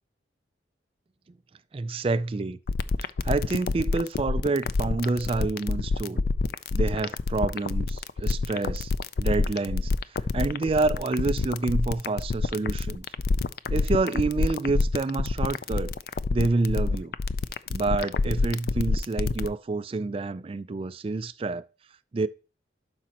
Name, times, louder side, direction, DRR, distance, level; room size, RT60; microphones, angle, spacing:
voice 1, 1.7-2.6 3.2-6.2 6.7-8.9 9.2-13.1 13.7-15.9 16.3-17.1 17.7-21.6 22.1-22.3, right 3 dB, 30° right, 0.3 m, -28 dB
sound 1, 2.7-19.5, left 3 dB, 55° left, 0.4 m, -26 dB
11.5 x 5.1 x 2.9 m
head